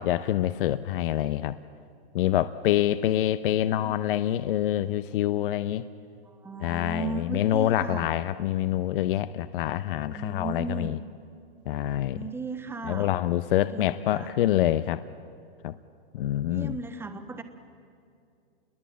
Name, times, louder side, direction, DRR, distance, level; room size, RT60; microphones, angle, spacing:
voice 1, 0.0-1.6 2.1-5.8 6.6-11.0 11.7-12.2 12.9-15.0 15.6-15.7 16.1-16.8, left 13 dB, 65° left, 14 dB, 0.7 m, -26 dB
voice 2, 6.2-8.1 10.1-11.0 12.1-13.1 13.5-14.4 16.5-17.4, right 4 dB, 10° right, 7 dB, 1.3 m, -36 dB
28.5 x 21.5 x 8.3 m, 2.5 s
hypercardioid pair, 145°, 30 cm